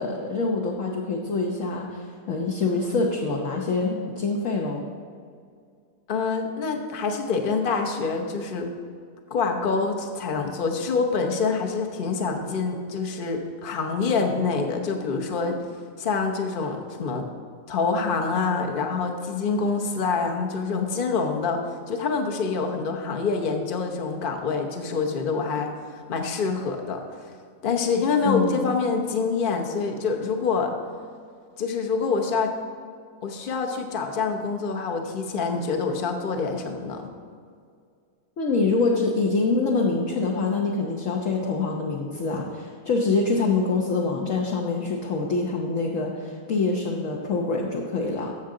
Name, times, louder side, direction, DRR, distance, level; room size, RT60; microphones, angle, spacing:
voice 1, 0.0-4.8 28.2-28.6 38.4-48.3, left 3 dB, 60° left, -1 dB, 1.2 m, -25 dB
voice 2, 6.1-8.7 9.3-15.6 16.0-17.3 17.7-21.6 21.9-25.7 26.1-27.0 27.6-30.7 31.6-32.5 33.2-37.1, left 4 dB, 40° left, 3 dB, 1.0 m, -26 dB
13.5 x 7.1 x 3.8 m, 2.2 s
omnidirectional pair, 1.6 m